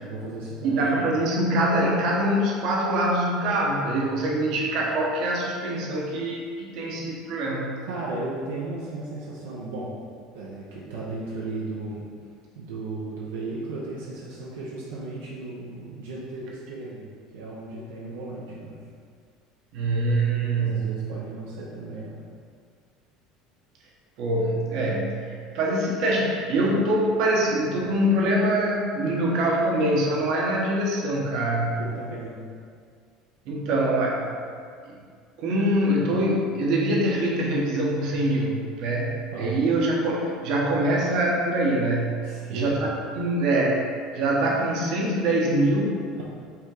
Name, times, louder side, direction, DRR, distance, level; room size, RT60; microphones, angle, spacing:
voice 1, 0.0-0.8 7.9-9.9 10.3-12.1 12.5-17.1 17.3-18.8 20.5-22.2 29.0-29.2 31.8-32.5 39.3-39.6 42.2-42.7 46.2-46.3, right 2 dB, 90° right, -6 dB, 0.6 m, -35 dB
voice 2, 0.6-7.7 19.7-20.9 24.2-31.7 33.5-34.3 34.9-35.0 35.4-42.2 42.5-42.9 43.2-43.9 44.1-46.0, right 1 dB, 65° right, -2 dB, 0.9 m, -24 dB
5.7 x 2.2 x 3.8 m, 2.1 s
supercardioid pair, 90°, 0 cm